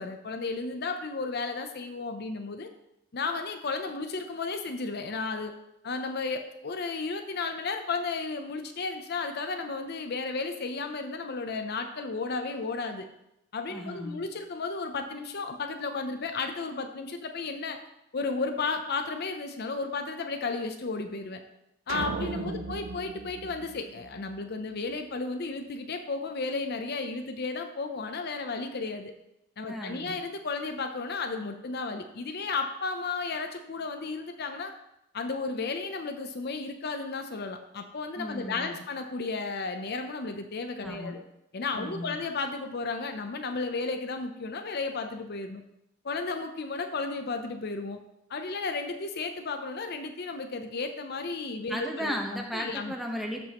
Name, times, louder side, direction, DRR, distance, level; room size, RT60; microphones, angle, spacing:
voice 1, 0.0-2.7 3.1-5.5 5.8-13.1 13.5-17.8 18.1-21.4 21.9-29.1 29.6-34.7 35.1-41.2 41.5-45.6 46.0-48.0 48.3-52.2 52.5-52.9, left 4 dB, 55° left, 6 dB, 0.6 m, -33 dB
voice 2, 13.7-14.2 22.2-22.6 29.7-30.1 38.2-38.8 40.8-41.2 41.8-42.2 51.7-53.4, equal, ahead, 1 dB, 1.0 m, -35 dB
sound 1, 21.9-24.4, right 4 dB, 85° right, 0.5 m, -37 dB
13.0 x 5.4 x 3.0 m, 0.85 s
head